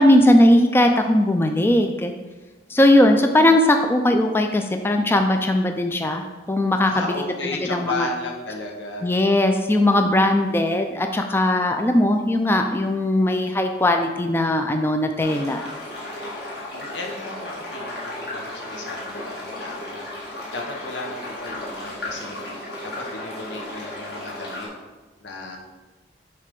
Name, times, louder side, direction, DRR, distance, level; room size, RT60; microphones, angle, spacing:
voice 1, 0.0-2.1 2.7-7.1 7.4-8.1 9.0-15.7, left 1 dB, 15° left, 5 dB, 0.3 m, -19 dB
voice 2, 6.8-9.1 16.4-22.5 22.8-24.7 25.2-25.6, left 2 dB, 90° left, 1 dB, 1.0 m, -34 dB
sound 1, 15.2-24.7, left 1 dB, 60° left, 2.0 m, -34 dB
6.8 x 3.2 x 5.2 m, 1.2 s
head